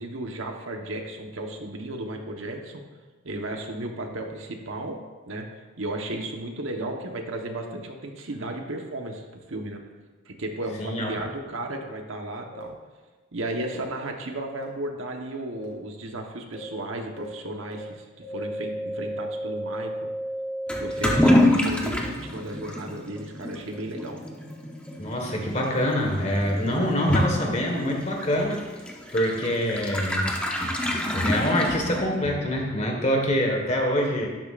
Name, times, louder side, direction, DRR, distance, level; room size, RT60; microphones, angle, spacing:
voice 1, 0.0-2.8 3.2-5.0 5.3-9.8 10.2-12.8 13.3-19.9 20.8-24.2, right 1 dB, 75° right, 3 dB, 1.2 m, -34 dB
voice 2, 10.8-11.2 25.0-28.6 29.1-30.3 30.6-34.3, equal, 35° left, 1 dB, 1.5 m, -25 dB
sound 1, 12.5-12.6 13.5-13.6 14.5-14.6 15.6-15.7 16.5-16.6 17.2-17.3 17.7-17.8 18.2-21.4, equal, 25° right, 2.7 m, -33 dB
Toilet flush / Liquid, 20.7-32.3, left 1 dB, 5° left, 0.9 m, -27 dB
12.0 x 10.5 x 2.5 m, 1.3 s
head